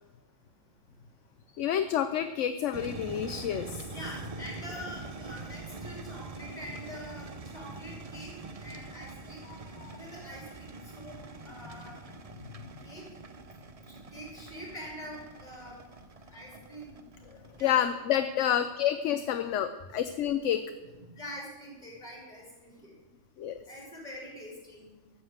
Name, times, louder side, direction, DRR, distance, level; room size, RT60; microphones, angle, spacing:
voice 1, 1.5-3.8 9.5-10.0 17.6-20.6 23.4-23.6, left 10 dB, 75° left, 10 dB, 1.0 m, -29 dB
sound 1, 2.7-17.6, right 3 dB, 35° right, 0.6 m, -44 dB
voice 2, 3.9-8.3 8.6-9.4 10.0-12.0 12.8-13.0 13.9-15.8 16.3-17.0 17.6-17.8 18.5-18.6 19.9-20.0 20.5-20.6 20.9-22.9 23.7-24.9, equal, 35° left, -3 dB, 5.0 m, -45 dB
13.0 x 7.3 x 7.9 m, 1.1 s
omnidirectional pair, 1.3 m